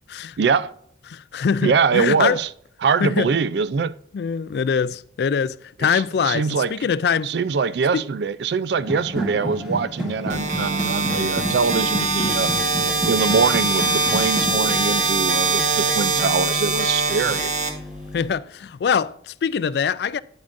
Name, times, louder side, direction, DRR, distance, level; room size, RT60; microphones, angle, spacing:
voice 1, 0.4-0.7 1.6-2.5 2.8-3.9 5.9-6.9 7.2-12.5 13.1-17.5, right 5 dB, 70° right, 0.4 m, -23 dB
voice 2, 1.1-2.4 3.0-3.3 4.1-7.3 7.9-8.0 18.1-20.2, left 6 dB, 65° left, 0.3 m, -23 dB
sound 1, 8.8-17.7, equal, 5° right, 1.6 m, -31 dB
sound 2, 10.3-18.3, right 3 dB, 40° right, 1.2 m, -23 dB
8.9 x 8.7 x 2.5 m
head